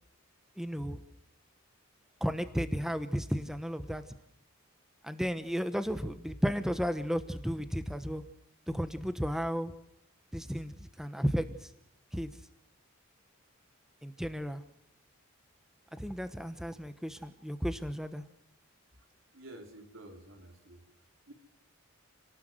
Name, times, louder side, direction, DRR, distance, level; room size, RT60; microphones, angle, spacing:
voice 1, 0.6-1.0 2.2-4.0 5.0-8.2 8.7-9.7 10.3-11.7 12.1-12.3 14.0-14.6 15.9-18.2, equal, ahead, 9 dB, 1.1 m, -33 dB
voice 2, 19.3-20.9 21.2-21.3, right 1 dB, 70° right, 4 dB, 4.4 m, -50 dB
29.5 x 19.0 x 7.8 m, 0.76 s
head